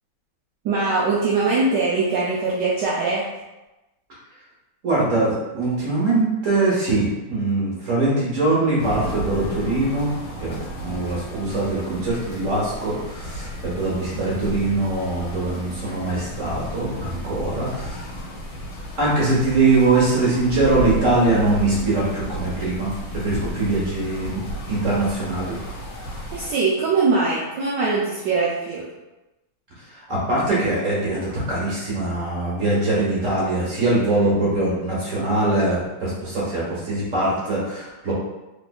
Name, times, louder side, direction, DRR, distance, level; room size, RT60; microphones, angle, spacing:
voice 1, 0.6-3.2 26.3-28.9, right 3 dB, 80° right, -6 dB, 0.9 m, -22 dB
voice 2, 4.8-10.1 10.4-18.0 19.0-24.4 24.7-25.5 30.1-38.1, right 2 dB, 55° right, -7 dB, 0.9 m, -22 dB
sound 1, 8.8-26.5, equal, 70° left, 1.4 m, -33 dB
3.4 x 3.2 x 2.2 m, 1.0 s
omnidirectional pair, 2.4 m